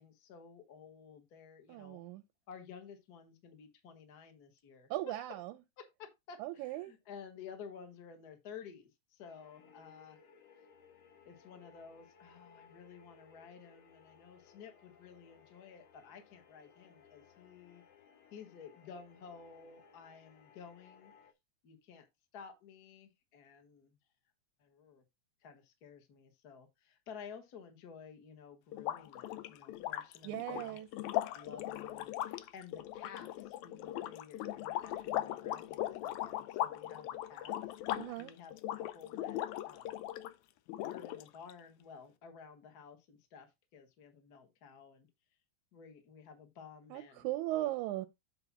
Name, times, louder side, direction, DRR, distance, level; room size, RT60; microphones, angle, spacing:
voice 1, 0.0-2.0 2.5-5.1 5.8-10.2 11.2-17.8 18.3-21.1 21.6-22.0 22.3-24.0 24.6-25.0 25.4-30.8 31.3-37.7 38.2-40.0 40.8-45.1 45.7-47.3, left 6 dB, 40° left, 1.5 m, -53 dB
voice 2, 1.7-2.2 4.9-5.5 6.4-6.9 30.2-30.9 38.0-38.3 46.9-48.1, right 16 dB, 90° right, 2.0 m, -38 dB
sound 1, 9.2-21.3, left 6 dB, 65° left, 2.2 m, -62 dB
sound 2, 28.7-40.3 40.7-41.5, left 13 dB, 85° left, 2.0 m, -39 dB
8.3 x 3.3 x 6.0 m
omnidirectional pair, 3.4 m